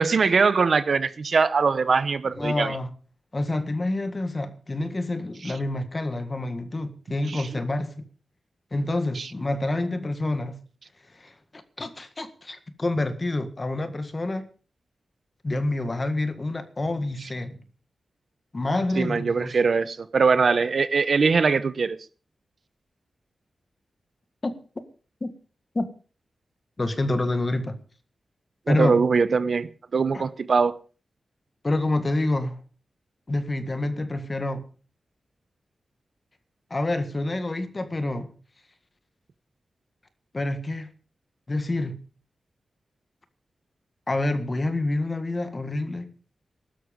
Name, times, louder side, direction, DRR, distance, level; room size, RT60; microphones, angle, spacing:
voice 1, 0.0-2.7 5.4-5.5 7.3-7.5 9.1-9.3 19.0-22.0 28.7-30.7, right 5 dB, 50° right, 0.9 m, -22 dB
voice 2, 2.2-2.9 3.3-7.9 8.7-10.6 11.1-14.5 15.4-17.6 18.5-19.6 24.4-24.5 25.2-25.3 25.8-25.9 26.8-27.8 28.7-29.0 30.1-30.2 31.6-32.6 33.3-34.6 36.7-38.3 40.3-40.9 41.5-42.0 44.1-46.1, left 2 dB, 25° left, 1.7 m, -27 dB
16.5 x 12.5 x 5.2 m
wide cardioid pair, 170°, 0 cm